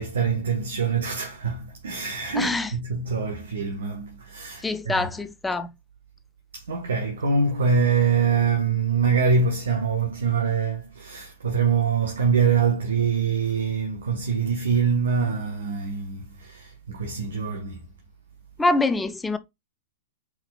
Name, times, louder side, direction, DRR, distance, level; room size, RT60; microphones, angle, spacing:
voice 1, 0.0-5.1 6.5-17.8, right 5 dB, 70° right, 0.9 m, -24 dB
voice 2, 2.3-2.7 4.6-5.7 18.6-19.4, left 2 dB, 10° left, 0.5 m, -24 dB
4.7 x 3.7 x 2.3 m
figure-of-eight pair, 105°, 0 cm